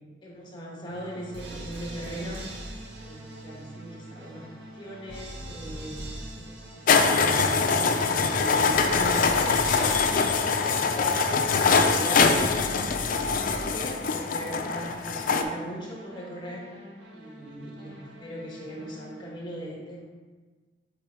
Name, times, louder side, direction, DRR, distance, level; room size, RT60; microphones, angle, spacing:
voice 1, 0.2-2.4 3.0-10.5 10.9-12.5 13.4-16.7 17.1-20.0, equal, 25° left, -3 dB, 1.3 m, -38 dB
sound 1, 0.9-19.4, right 1 dB, 70° right, 1.0 m, -43 dB
sound 2, 6.9-15.4, left 4 dB, 50° left, 0.4 m, -23 dB
7.5 x 3.6 x 3.5 m, 1.4 s
head